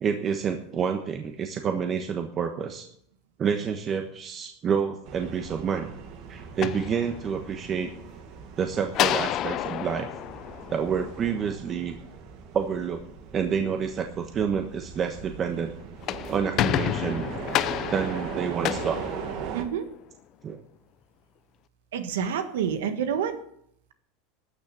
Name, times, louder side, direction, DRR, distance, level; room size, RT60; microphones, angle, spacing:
voice 1, 0.0-2.9 3.4-5.9 6.3-7.9 8.6-10.1 10.7-12.0 12.5-13.0 13.3-15.7 16.3-17.3 17.9-19.0 20.4-20.6, right 7 dB, 30° right, 5 dB, 1.2 m, -28 dB
sound 1, 5.1-19.6, right 7 dB, 55° right, 1.8 m, -40 dB
sound 2, 6.4-7.6 8.9-11.4 15.8-19.9, left 13 dB, 45° left, 0.6 m, -30 dB
voice 2, 19.5-19.8 21.9-23.3, right 8 dB, 85° right, 8 dB, 1.5 m, -28 dB
13.0 x 6.5 x 9.0 m, 0.69 s
supercardioid pair, 125°, 0 cm